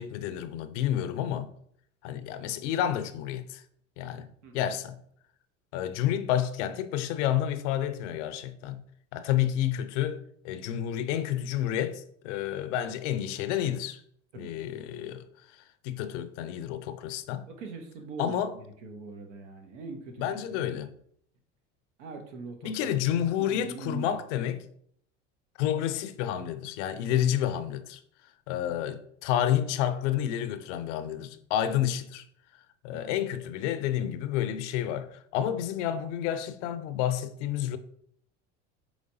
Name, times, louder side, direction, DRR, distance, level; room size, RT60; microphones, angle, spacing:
voice 1, 0.0-1.5 2.0-3.6 4.0-4.3 4.5-5.0 5.7-8.8 9.1-14.0 14.4-15.2 15.8-17.4 18.2-18.5 20.2-20.9 22.6-24.6 25.6-28.0 28.5-32.2 32.8-37.8, left 11 dB, 75° left, 0.5 m, -30 dB
voice 2, 4.4-4.7 14.3-14.7 17.5-20.6 22.0-22.7 23.4-24.2 27.1-27.3 32.9-33.3, right 4 dB, 85° right, 0.9 m, -42 dB
5.0 x 3.1 x 2.7 m
hypercardioid pair, 85°, 36 cm